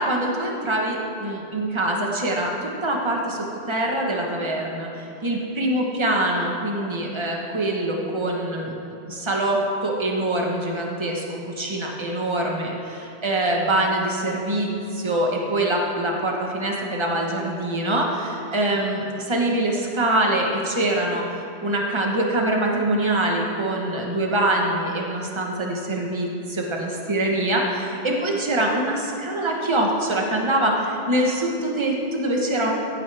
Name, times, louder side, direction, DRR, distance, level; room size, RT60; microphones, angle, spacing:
voice 1, 0.0-8.7 9.1-21.2 21.6-32.7, right 1 dB, 25° right, 0 dB, 1.2 m, -24 dB
15.0 x 9.1 x 3.5 m, 2.7 s
omnidirectional pair, 1.2 m